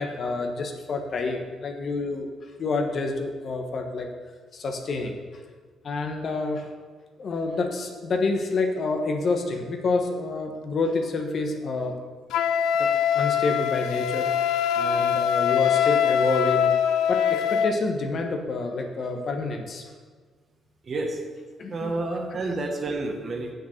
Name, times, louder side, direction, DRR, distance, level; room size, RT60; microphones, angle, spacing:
voice 1, 0.0-2.3 2.6-4.1 4.5-5.1 5.8-6.7 7.2-11.9 12.8-12.9 13.1-14.3 14.7-16.7 17.1-19.8 21.6-22.0, left 3 dB, 55° left, 4 dB, 1.2 m, -28 dB
Wind instrument woodwind instrument, 12.3-17.8, left 8 dB, 90° left, 0.4 m, -23 dB
voice 2, 20.9-21.2 21.7-23.5, right 2 dB, 45° right, 3 dB, 1.5 m, -29 dB
6.9 x 6.7 x 6.5 m, 1.5 s
cardioid pair, 90°, 0 cm